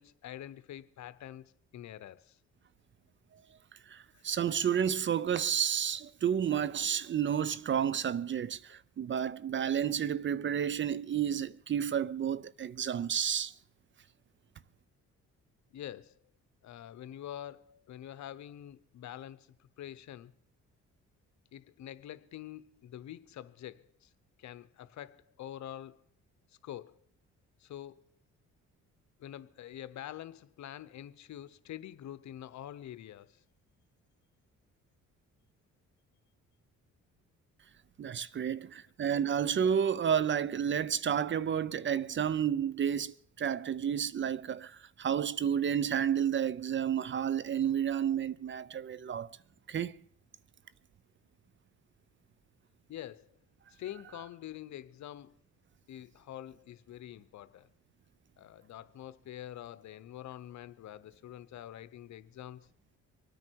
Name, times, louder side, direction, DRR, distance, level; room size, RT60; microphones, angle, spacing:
voice 1, 0.0-2.4 4.1-4.2 15.7-16.2 16.6-20.3 21.5-24.1 24.4-26.0 26.6-27.0 27.6-28.1 29.2-33.4 52.9-53.3 53.7-55.3 55.9-57.7 58.4-62.7, left 11 dB, 65° left, 0.9 m, -46 dB
voice 2, 3.9-13.5 38.0-49.3 49.7-49.9, right 8 dB, 40° right, 0.5 m, -31 dB
24.5 x 9.5 x 4.6 m
cardioid pair, 90°, 30 cm